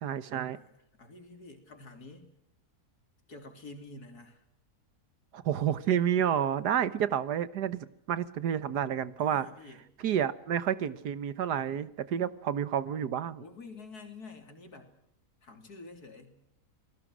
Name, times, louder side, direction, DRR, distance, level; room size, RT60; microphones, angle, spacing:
voice 1, 0.0-0.6 5.3-9.5 10.0-13.4, right 9 dB, 80° right, 15 dB, 1.7 m, -30 dB
voice 2, 0.5-2.3 3.3-4.4 9.2-9.8 13.4-14.9 15.4-16.4, left 3 dB, 70° left, 5 dB, 3.9 m, -48 dB
28.5 x 19.5 x 6.3 m, 0.79 s
omnidirectional pair, 1.7 m